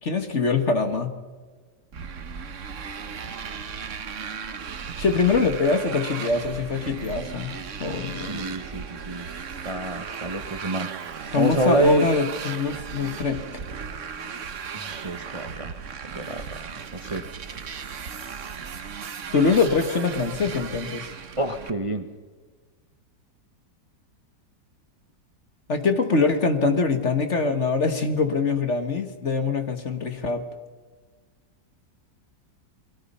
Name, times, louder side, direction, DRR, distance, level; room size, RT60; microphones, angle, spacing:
voice 1, 0.0-1.1 5.0-7.5 7.8-8.4 11.3-13.6 19.3-21.1 25.7-30.4, left 4 dB, 40° left, 8 dB, 1.7 m, -23 dB
Motorcycle, 1.9-21.7, right 6 dB, 50° right, 1.3 m, -36 dB
voice 2, 8.3-9.2 9.6-10.9 11.4-12.1 14.7-15.7 16.1-16.6 16.9-17.2 21.4-22.0, right 1 dB, 25° right, 7 dB, 0.9 m, -27 dB
29.5 x 21.5 x 5.6 m, 1.4 s
omnidirectional pair, 1.9 m